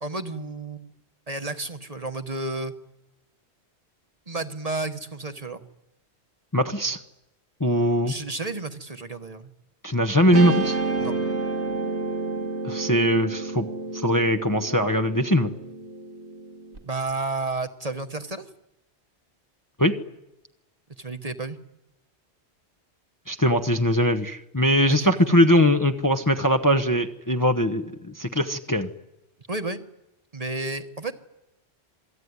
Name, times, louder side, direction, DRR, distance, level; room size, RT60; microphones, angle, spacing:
voice 1, 0.0-0.9 1.3-2.7 4.3-5.6 8.1-9.5 11.0-11.2 16.8-18.5 21.0-21.6 24.9-25.1 29.5-29.8 30.3-31.1, right 2 dB, 35° right, 9 dB, 1.4 m, -31 dB
voice 2, 6.5-7.0 7.6-8.1 9.8-10.8 12.6-13.7 13.9-15.5 19.8-20.0 23.3-28.9, equal, 20° left, 4 dB, 1.0 m, -21 dB
Guitar, 10.3-16.8, right 3 dB, 75° right, 2.1 m, -30 dB
27.5 x 20.0 x 9.7 m, 0.93 s
omnidirectional pair, 1.1 m